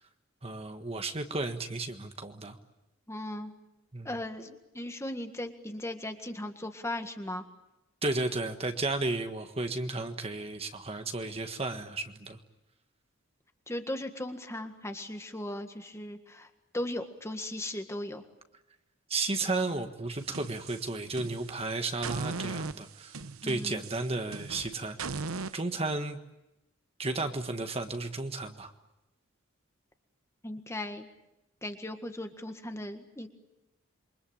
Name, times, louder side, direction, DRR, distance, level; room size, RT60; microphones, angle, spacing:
voice 1, 0.4-2.6 3.9-4.1 8.0-12.4 19.1-23.1 23.4-25.2 25.5-26.2 27.0-28.7, right 2 dB, 30° right, 7 dB, 1.5 m, -33 dB
voice 2, 3.1-3.5 4.1-7.4 13.7-16.5 16.7-18.2 23.4-23.8 30.4-31.1 31.6-33.3, left 1 dB, 15° left, 6 dB, 1.8 m, -37 dB
sound 1, 20.2-21.6 22.0-25.6, right 4 dB, 85° right, 1.0 m, -38 dB
28.0 x 24.0 x 8.9 m, 0.93 s
head